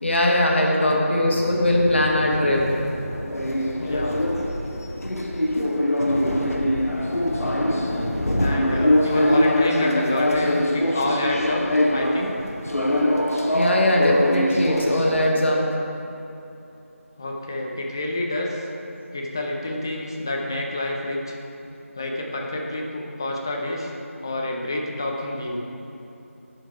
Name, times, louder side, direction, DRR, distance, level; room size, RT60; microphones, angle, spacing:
voice 1, 0.0-2.7 6.6-6.8 13.5-15.6, left 1 dB, 50° left, -1 dB, 1.3 m, -20 dB
sound 1, 1.2-15.3, left 1 dB, 90° left, 1.0 m, -23 dB
voice 2, 3.8-4.2 5.6-5.7 8.4-11.6 11.9-12.5 17.2-18.6 19.1-21.3 22.0-23.9 24.2-25.6, left 1 dB, 15° left, -1 dB, 0.5 m, -28 dB
10.0 x 4.5 x 4.7 m, 2.8 s
figure-of-eight pair, 170°, 8 cm